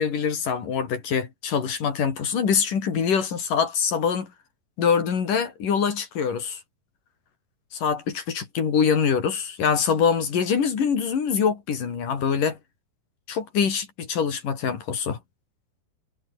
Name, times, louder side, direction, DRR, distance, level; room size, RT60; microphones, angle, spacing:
voice 1, 0.0-4.3 4.8-6.6 7.7-12.6 13.3-15.2, left 6 dB, 60° left, 4.9 m, -24 dB
omnidirectional pair, 4.2 m